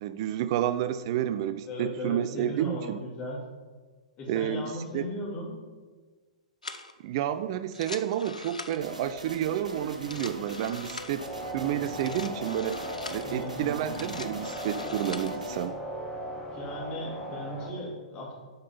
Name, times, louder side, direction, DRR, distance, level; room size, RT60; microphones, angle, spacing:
voice 1, 0.0-3.0 4.3-5.1 7.0-11.2 11.5-12.8 13.1-15.7, right 11 dB, 45° right, 12 dB, 0.4 m, -30 dB
voice 2, 1.7-3.4 4.2-5.6 13.2-14.0 16.5-18.3, equal, 30° left, -3 dB, 2.6 m, -37 dB
sound 1, 6.6-6.9 7.6-9.0 9.9-11.2 11.9-13.3 13.8-15.4, left 3 dB, 80° left, 0.6 m, -42 dB
sound 2, 8.8-15.7, right 1 dB, 80° right, 1.1 m, -42 dB
sound 3, 11.2-17.7, equal, 15° left, 1.3 m, -38 dB
7.9 x 5.4 x 5.4 m, 1.4 s
figure-of-eight pair, 105°, 4 cm